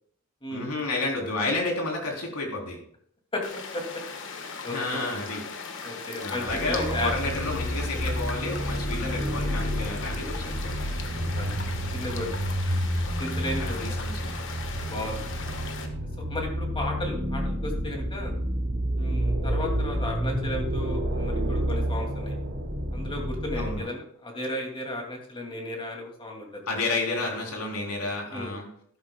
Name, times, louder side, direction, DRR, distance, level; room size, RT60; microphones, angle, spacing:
voice 1, 0.5-2.8 4.7-5.4 6.2-11.0 13.6-14.4 14.9-15.0 23.5-23.9 26.7-28.7, left 2 dB, 85° left, 0 dB, 3.2 m, -31 dB
voice 2, 3.3-3.8 4.6-5.0 5.8-7.1 11.3-11.5 11.9-12.3 13.2-13.8 14.9-15.2 16.2-18.3 19.0-22.4 22.9-26.6 28.3-28.6, left 1 dB, 25° left, 1 dB, 2.3 m, -34 dB
sound 1, 3.4-15.9, left 5 dB, 60° left, 1.2 m, -38 dB
sound 2, 6.5-23.8, equal, 55° right, 3.4 m, -29 dB
12.0 x 12.0 x 2.2 m, 0.65 s
head